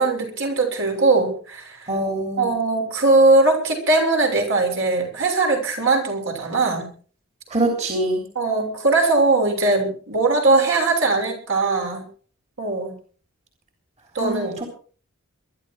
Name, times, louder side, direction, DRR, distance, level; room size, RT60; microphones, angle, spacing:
voice 1, 0.0-1.9 2.4-6.9 8.3-12.0 12.6-12.9 14.1-14.7, right 3 dB, 60° right, 2 dB, 6.7 m, -20 dB
voice 2, 1.9-2.5 7.5-8.2 14.2-14.5, right 1 dB, 30° right, 3 dB, 3.5 m, -24 dB
22.5 x 12.0 x 4.8 m, 0.43 s
head